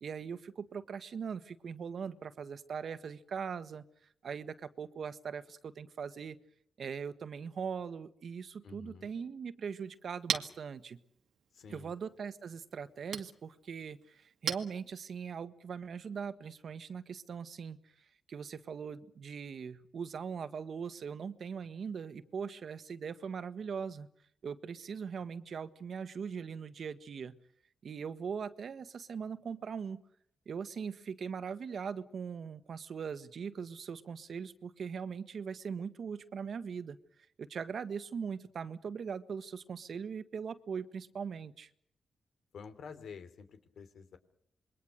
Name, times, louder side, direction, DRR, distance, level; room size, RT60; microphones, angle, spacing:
voice 1, 0.0-3.8 4.2-6.4 6.8-11.0 11.7-17.8 18.3-24.1 24.4-27.4 27.8-30.0 30.4-37.0 37.4-41.7, right 6 dB, 70° right, 13 dB, 1.5 m, -40 dB
voice 2, 8.6-9.1 11.5-11.9 42.5-44.2, left 5 dB, 80° left, 11 dB, 3.2 m, -49 dB
Chink clink, 9.7-15.4, right 8 dB, 85° right, 2.0 m, -42 dB
27.5 x 22.0 x 6.6 m, 0.68 s
cardioid pair, 65°, 0 cm